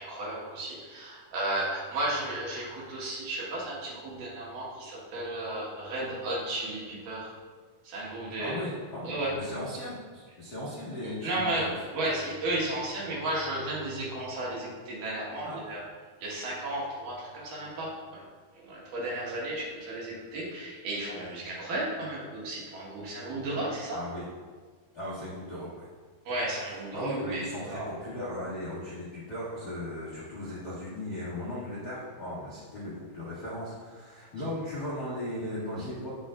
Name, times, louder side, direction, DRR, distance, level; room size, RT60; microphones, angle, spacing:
voice 1, 0.0-7.3 7.8-8.6 9.0-9.3 11.2-11.7 11.9-15.8 16.2-18.2 18.6-24.0 26.3-27.9, right 1 dB, 60° right, -6 dB, 2.9 m, -34 dB
voice 2, 8.4-11.7 15.4-15.8 23.9-24.2 24.9-25.9 26.9-36.1, left 1 dB, 80° left, -10 dB, 0.8 m, -37 dB
8.7 x 7.2 x 2.5 m, 1.5 s
omnidirectional pair, 4.6 m